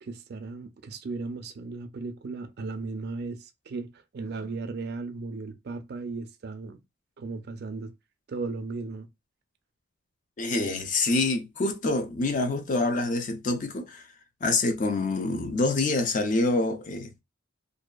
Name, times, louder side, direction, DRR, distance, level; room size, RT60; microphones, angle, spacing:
voice 1, 0.0-6.8 7.2-7.9 8.3-9.1, right 3 dB, 50° right, 0.4 m, -36 dB
voice 2, 10.4-14.0 14.4-17.1, left 2 dB, 40° left, 0.4 m, -26 dB
2.6 x 2.2 x 2.2 m
head